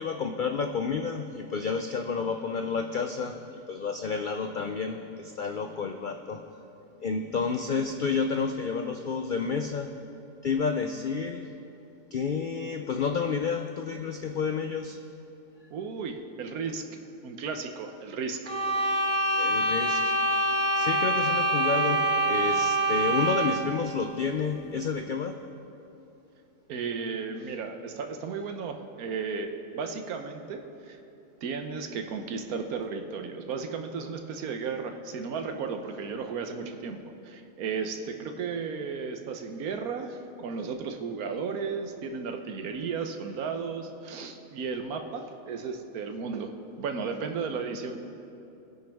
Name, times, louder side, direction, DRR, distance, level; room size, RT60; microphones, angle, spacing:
voice 1, 0.0-6.5 7.0-10.0 10.4-11.5 12.1-15.0 19.3-20.2 20.7-25.4, left 5 dB, 65° left, 6 dB, 0.5 m, -30 dB
voice 2, 15.7-16.8 17.2-18.4 26.7-31.0 31.4-37.0 37.2-46.5 46.8-48.0, right 5 dB, 90° right, 5 dB, 1.3 m, -34 dB
sound 1, 18.5-23.7, right 2 dB, 5° left, 1.6 m, -25 dB
21.0 x 10.5 x 3.5 m, 2.8 s
omnidirectional pair, 1.5 m